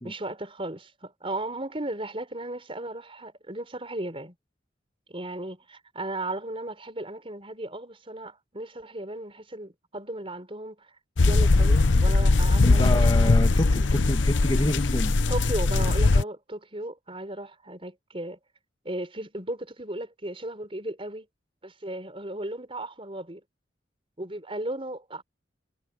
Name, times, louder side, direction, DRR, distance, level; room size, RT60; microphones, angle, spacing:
voice 1, 0.0-4.3 5.1-10.9 11.2-13.3 15.3-18.4 18.8-21.3 21.6-23.4 24.2-25.2, right 1 dB, 30° right, 5.1 m, -36 dB
sound 1, 11.2-16.2, left 3 dB, 80° left, 0.8 m, -20 dB
voice 2, 12.6-15.1, left 1 dB, 25° left, 1.8 m, -28 dB
head